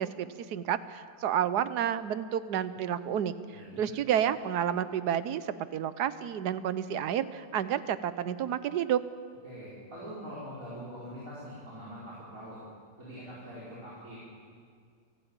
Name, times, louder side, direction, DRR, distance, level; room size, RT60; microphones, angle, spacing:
voice 1, 0.0-3.3 3.8-9.0, right 9 dB, 65° right, 14 dB, 1.3 m, -30 dB
voice 2, 3.5-3.9 9.4-12.6 13.0-14.2, equal, 45° right, -8 dB, 5.4 m, -43 dB
29.5 x 12.0 x 8.9 m, 2.1 s
omnidirectional pair, 2.0 m